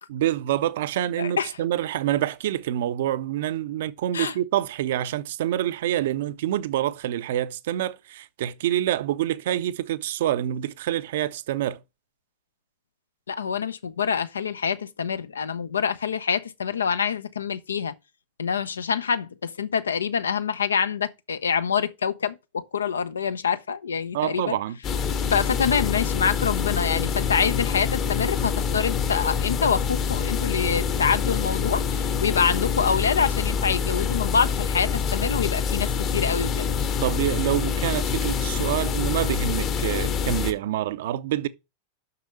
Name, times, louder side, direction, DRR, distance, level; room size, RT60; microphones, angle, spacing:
voice 1, 0.1-11.8 24.1-24.8 37.0-41.5, right 12 dB, 55° right, 0.6 m, -26 dB
voice 2, 1.2-1.5 4.1-4.3 13.3-17.9 18.4-24.6 25.3-36.7, left 6 dB, 70° left, 0.7 m, -26 dB
sound 1, 24.8-40.5, left 6 dB, 35° left, 1.1 m, -26 dB
6.8 x 6.2 x 6.2 m
figure-of-eight pair, 90°, 0 cm